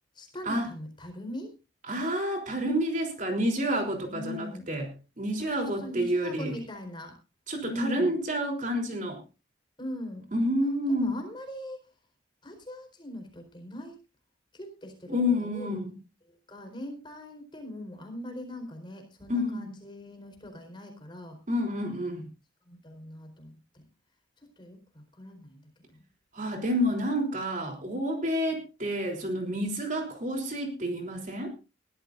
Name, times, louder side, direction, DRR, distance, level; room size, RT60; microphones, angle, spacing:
voice 1, 0.1-1.5 4.1-4.7 5.4-7.2 7.6-8.2 9.8-10.3 10.9-11.8 12.4-14.0 14.5-15.9 16.3-21.4 22.6-23.8 24.4-26.0, left 1 dB, 25° left, 4 dB, 4.3 m, -41 dB
voice 2, 1.9-4.9 5.2-6.5 7.5-9.2 10.3-11.1 15.1-15.9 19.3-19.7 21.5-22.3 26.3-31.5, equal, 40° right, 2 dB, 3.5 m, -29 dB
21.5 x 13.0 x 2.6 m, 0.31 s
head